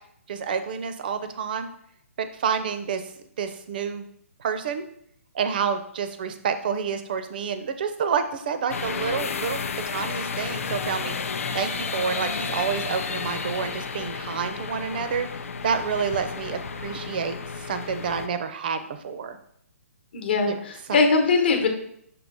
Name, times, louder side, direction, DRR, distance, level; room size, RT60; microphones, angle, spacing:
voice 1, 0.3-1.7 2.4-3.1 3.4-4.1 4.4-4.8 5.3-11.2 11.5-19.4 20.5-20.6 20.9-21.0, right 6 dB, 35° right, 9 dB, 0.5 m, -29 dB
sound 1, 8.7-18.3, left 5 dB, 65° left, 0.6 m, -32 dB
voice 2, 20.1-21.7, left 4 dB, 45° left, 4 dB, 1.0 m, -21 dB
6.2 x 2.9 x 5.2 m, 0.70 s
hypercardioid pair, 165°, 8 cm